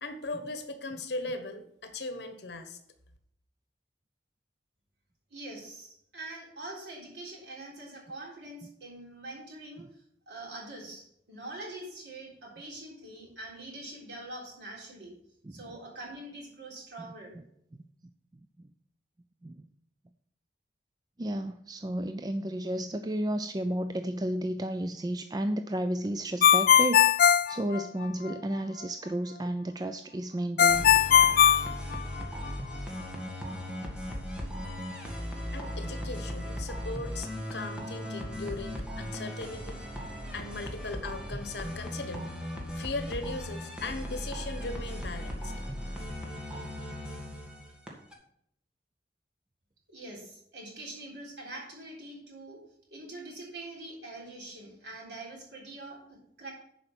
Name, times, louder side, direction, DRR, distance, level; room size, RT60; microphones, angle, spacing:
voice 1, 0.0-2.8 35.5-39.8 40.3-42.3 42.7-45.5, left 2 dB, 70° left, 8 dB, 1.3 m, -38 dB
voice 2, 5.3-9.9 10.3-15.1 15.5-17.4 49.9-52.6 52.9-56.5, right 2 dB, 70° right, -2 dB, 3.8 m, -44 dB
voice 3, 21.2-31.0 32.7-32.9, right 1 dB, 25° right, 8 dB, 0.4 m, -32 dB
Ringtone, 26.4-28.3 30.6-32.5, left 9 dB, 55° left, 0.3 m, -20 dB
sound 1, 30.7-48.1, equal, 5° right, 1.8 m, -37 dB
10.5 x 5.1 x 6.1 m, 0.72 s
head